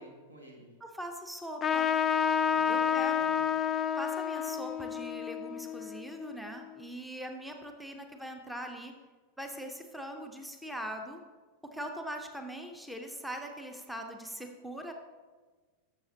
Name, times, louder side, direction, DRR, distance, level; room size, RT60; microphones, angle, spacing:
voice 1, 0.0-0.7 2.5-3.5, equal, 75° right, 2 dB, 1.5 m, -51 dB
voice 2, 0.8-1.9 2.7-3.3 4.0-8.9 9.4-11.2 11.6-14.9, equal, ahead, 4 dB, 0.7 m, -41 dB
Trumpet, 1.6-6.6, left 8 dB, 25° left, 0.3 m, -30 dB
12.0 x 7.1 x 2.8 m, 1.4 s
figure-of-eight pair, 90°, 0 cm